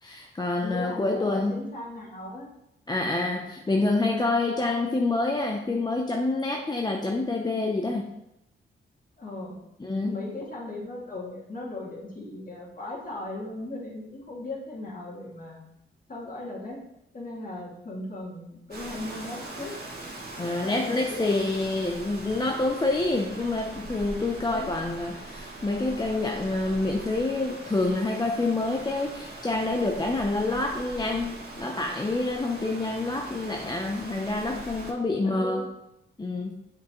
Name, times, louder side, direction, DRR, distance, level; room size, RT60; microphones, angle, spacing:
voice 1, 0.0-1.6 2.9-8.1 9.8-10.2 20.4-35.6 36.2-36.6, left 2 dB, 20° left, 2 dB, 0.6 m, -27 dB
voice 2, 0.6-2.5 9.2-9.6 10.0-15.7 16.1-16.8 17.1-19.7 20.4-21.3 24.5-24.8 35.2-35.7, left 2 dB, 40° left, -4 dB, 2.3 m, -37 dB
Rain, 18.7-34.9, right 2 dB, 50° right, 1.9 m, -41 dB
8.0 x 5.3 x 3.0 m, 0.86 s
wide cardioid pair, 100°, 21 cm